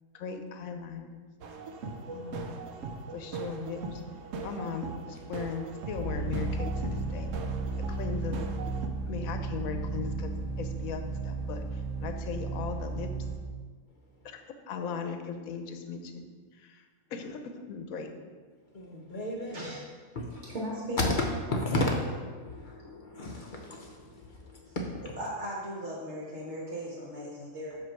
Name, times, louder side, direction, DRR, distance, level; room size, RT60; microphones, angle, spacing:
voice 1, 0.1-1.3 2.1-2.5 3.1-4.0 4.4-7.3 7.9-8.4 9.1-13.1 14.2-14.4 14.7-16.2 16.5-16.9 17.1-18.1, left 6 dB, 85° left, 6 dB, 1.1 m, -38 dB
sound 1, 1.4-8.9, right 4 dB, 75° right, 0.9 m, -40 dB
sound 2, 6.0-13.4, right 3 dB, 20° right, 1.1 m, -34 dB
voice 2, 18.7-19.7 20.1-20.5 21.0-21.1 21.5-25.1, left 1 dB, 50° left, 0 dB, 0.6 m, -33 dB
voice 3, 20.5-21.2 21.5-21.6 25.2-27.8, equal, 55° right, -4 dB, 1.3 m, -37 dB
7.7 x 2.7 x 5.8 m, 1.5 s
omnidirectional pair, 1.4 m